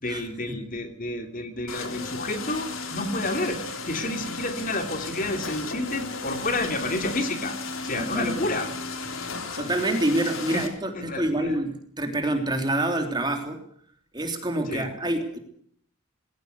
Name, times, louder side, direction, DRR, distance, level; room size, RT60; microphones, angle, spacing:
voice 1, 0.0-7.6 7.8-8.7 10.5-10.7 10.9-11.6 14.6-14.9, left 2 dB, 40° left, 6 dB, 3.1 m, -30 dB
sound 1, 1.7-10.7, left 4 dB, 80° left, 3.6 m, -35 dB
voice 2, 8.0-8.5 9.6-13.6 14.1-15.4, right 1 dB, 20° right, 5 dB, 3.3 m, -27 dB
21.0 x 17.5 x 8.0 m, 0.63 s
head